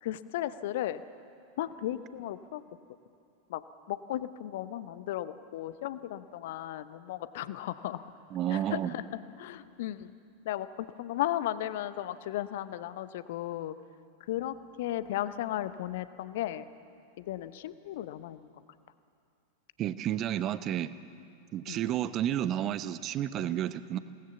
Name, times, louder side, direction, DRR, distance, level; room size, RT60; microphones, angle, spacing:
voice 1, 0.0-1.0 1.6-2.6 3.5-3.6 3.9-8.1 8.5-9.0 9.4-10.1 10.4-13.7 14.3-16.7 17.2-18.5 21.7-21.8, left 13 dB, 55° left, 13 dB, 0.9 m, -35 dB
voice 2, 8.3-8.9 19.8-20.9 21.5-24.0, right 11 dB, 35° right, 14 dB, 0.9 m, -31 dB
27.5 x 19.0 x 7.2 m, 2.5 s
figure-of-eight pair, 90°, 0 cm